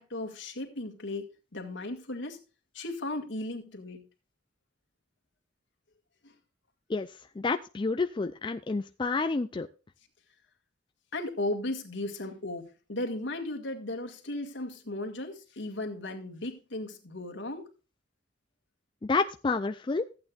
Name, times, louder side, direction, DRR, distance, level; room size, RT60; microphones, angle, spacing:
voice 1, 0.0-2.4 2.7-4.0 6.2-6.3 11.1-17.7, left 2 dB, 70° left, 3 dB, 2.1 m, -36 dB
voice 2, 6.9-9.7 19.0-20.1, left 3 dB, 25° left, 8 dB, 0.4 m, -29 dB
14.5 x 8.7 x 2.5 m, 0.32 s
head